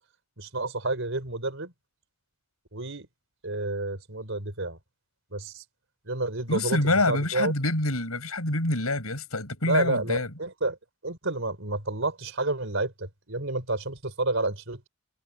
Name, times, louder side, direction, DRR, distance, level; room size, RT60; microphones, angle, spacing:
voice 1, 0.4-1.7 2.7-3.1 3.4-4.8 5.3-5.6 6.0-6.8 7.1-7.5 9.6-10.8 11.0-14.8, right 2 dB, 60° right, 5.0 m, -30 dB
voice 2, 6.5-10.3, left 2 dB, 80° left, 7.4 m, -26 dB
head